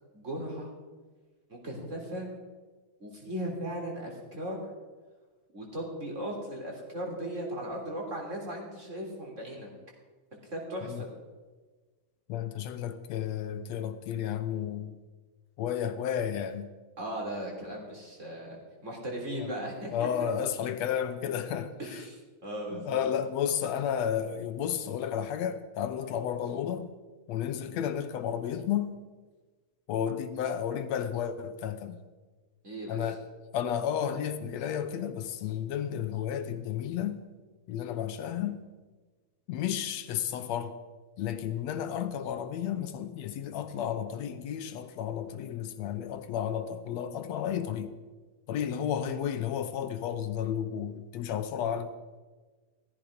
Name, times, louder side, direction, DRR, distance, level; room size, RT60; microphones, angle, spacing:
voice 1, 0.1-0.7 1.5-2.3 3.0-4.7 5.5-9.7 10.5-11.1 17.0-20.3 21.8-23.0 32.6-33.1, right 1 dB, 25° right, 3.6 m, -37 dB
voice 2, 12.3-14.9 15.6-16.7 19.4-19.5 19.9-22.0 22.7-26.9 27.3-28.9 29.9-32.0 32.9-33.2 33.5-37.2 37.7-38.6 39.5-40.7 41.2-47.9 48.5-51.9, left 9 dB, 70° left, 1.8 m, -32 dB
17.0 x 14.5 x 5.1 m
omnidirectional pair, 3.5 m